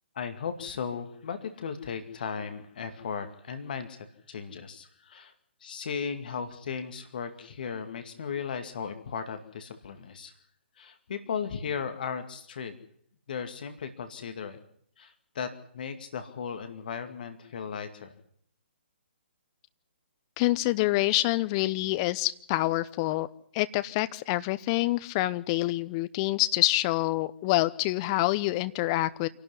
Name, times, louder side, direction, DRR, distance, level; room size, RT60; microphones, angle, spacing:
voice 1, 0.1-5.3 5.6-10.3 10.8-12.7 13.3-14.6 15.0-18.1, left 6 dB, 50° left, 7 dB, 2.3 m, -36 dB
voice 2, 20.4-23.3 23.5-29.3, left 18 dB, 25° left, 14 dB, 0.9 m, -26 dB
26.5 x 12.0 x 9.9 m, 0.67 s
figure-of-eight pair, 130°, 6 cm